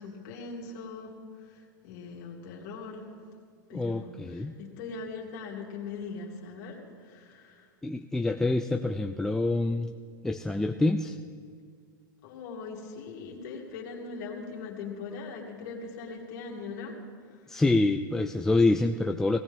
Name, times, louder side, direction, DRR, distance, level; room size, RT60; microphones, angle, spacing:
voice 1, 0.0-3.1 3.7-7.7 12.2-17.0 17.3-17.6, left 4 dB, 55° left, -2 dB, 2.7 m, -41 dB
voice 2, 3.7-4.5 7.8-9.9 10.2-11.2 17.5-19.4, left 2 dB, 5° left, 5 dB, 0.3 m, -26 dB
17.5 x 16.0 x 3.6 m, 2.1 s
supercardioid pair, 140°, 11 cm